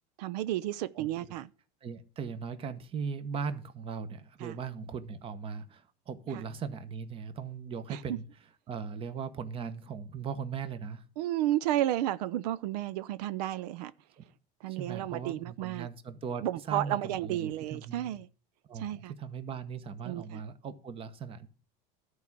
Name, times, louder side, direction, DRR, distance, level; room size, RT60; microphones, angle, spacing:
voice 1, 0.2-1.5 4.4-4.6 7.9-8.2 11.2-13.9 14.6-15.9 16.4-18.3 18.7-19.1 20.1-20.4, right 13 dB, 80° right, 0.6 m, -32 dB
voice 2, 1.8-8.2 8.7-11.1 14.2-14.3 14.7-18.2 18.7-21.5, right 6 dB, 25° right, 1.0 m, -39 dB
12.0 x 4.8 x 7.3 m
supercardioid pair, 145°, 20 cm